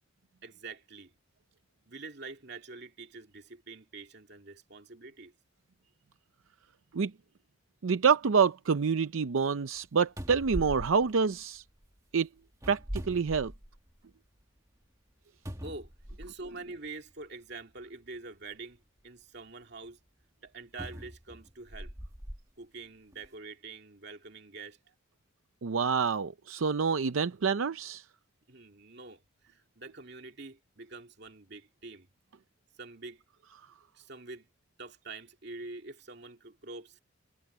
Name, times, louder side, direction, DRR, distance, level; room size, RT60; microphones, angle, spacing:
voice 1, 0.4-1.1 1.9-5.3 15.6-15.9 16.2-20.0 20.4-21.9 22.6-24.8 28.5-32.1 32.8-33.2 33.9-34.5 34.8-37.0, right 3 dB, 55° right, 2.5 m, -46 dB
voice 2, 7.8-11.6 12.1-12.3 12.7-13.5 25.6-28.0, right 5 dB, 80° right, 0.6 m, -27 dB
sound 1, 10.2-11.9 12.5-14.0 14.4-14.5 15.4-16.6 17.5-17.6 20.8-22.4 23.1-23.3, equal, 15° right, 1.8 m, -41 dB
head